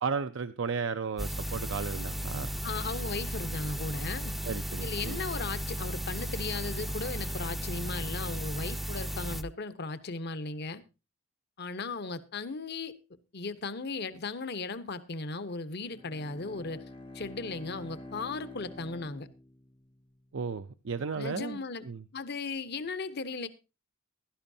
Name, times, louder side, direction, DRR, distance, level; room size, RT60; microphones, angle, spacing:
voice 1, 0.0-2.5 4.4-5.2 20.3-22.0, right 5 dB, 65° right, 0.6 m, -34 dB
sound 1, 1.2-9.4, equal, ahead, 0.6 m, -35 dB
voice 2, 2.6-4.3 4.8-10.8 11.6-13.0 13.3-16.8 17.1-19.3 21.2-21.8 22.1-23.5, left 3 dB, 55° left, 1.0 m, -36 dB
Bowed string instrument, 15.8-20.1, left 2 dB, 25° left, 0.8 m, -47 dB
16.0 x 12.0 x 2.7 m
head